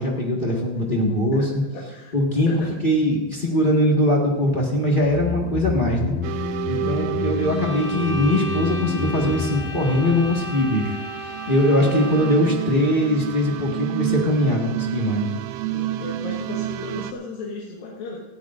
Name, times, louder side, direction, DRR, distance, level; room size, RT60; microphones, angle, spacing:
voice 1, 0.0-1.6 2.1-6.1 6.7-11.0 11.5-15.3, left 1 dB, 50° left, -2 dB, 0.6 m, -21 dB
voice 2, 1.7-2.1 2.5-2.7 6.9-7.2 11.7-12.1 15.7-18.2, left 3 dB, 90° left, -3 dB, 3.4 m, -35 dB
sound 1, 4.9-11.3 11.6-11.7, left 5 dB, 70° left, 2.2 m, -30 dB
sound 2, 6.2-17.1, right 14 dB, 85° right, 1.7 m, -31 dB
sound 3, 7.3-12.6, left 1 dB, 30° left, 2.7 m, -35 dB
18.5 x 14.5 x 2.6 m, 1.2 s
omnidirectional pair, 3.9 m